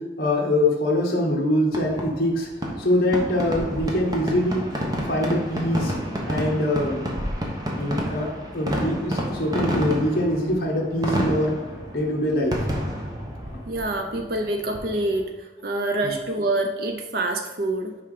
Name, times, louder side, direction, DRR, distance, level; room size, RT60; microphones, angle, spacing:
voice 1, 0.0-2.5 2.8-4.7 5.0-5.9 6.2-7.1 7.8-11.6 11.9-12.6 16.0-16.1, left 1 dB, 50° left, -2 dB, 1.2 m, -23 dB
Fireworks, 1.7-15.2, equal, 20° right, 1.0 m, -30 dB
voice 2, 13.7-15.2 15.6-17.9, right 2 dB, 55° right, 4 dB, 0.7 m, -26 dB
5.8 x 4.9 x 5.0 m, 1.1 s
head